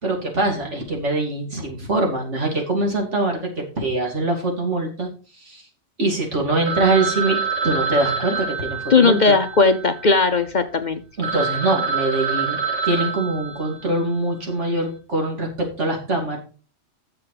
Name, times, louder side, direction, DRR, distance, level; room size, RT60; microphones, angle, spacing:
voice 1, 0.0-5.6 6.0-7.4 7.6-9.3 11.2-12.6 12.8-16.4, right 2 dB, 75° right, 1 dB, 3.0 m, -23 dB
Telephone, 6.7-10.4 10.9-11.0 11.2-14.1, right 5 dB, 90° right, 2.2 m, -27 dB
voice 2, 8.9-11.0, left 4 dB, 45° left, 9 dB, 0.8 m, -17 dB
9.6 x 6.9 x 4.9 m, 0.36 s
omnidirectional pair, 1.2 m